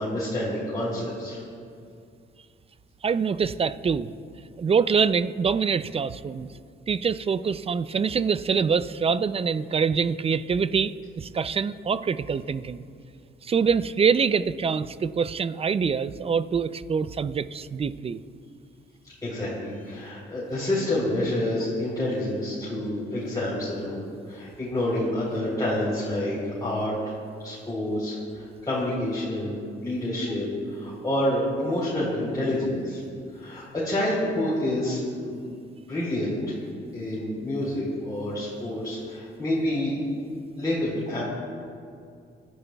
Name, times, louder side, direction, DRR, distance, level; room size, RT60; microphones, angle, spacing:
voice 1, 0.0-1.4 19.2-27.1 27.4-33.0 33.3-35.5 35.7-36.6 36.9-40.0 40.6-41.2, left 1 dB, 20° left, -8 dB, 3.5 m, -28 dB
voice 2, 3.0-4.1 4.6-6.5 6.9-12.8 13.4-18.2, right 6 dB, 30° right, 14 dB, 0.4 m, -25 dB
25.0 x 11.5 x 2.3 m, 2.3 s
cardioid pair, 90°, 20 cm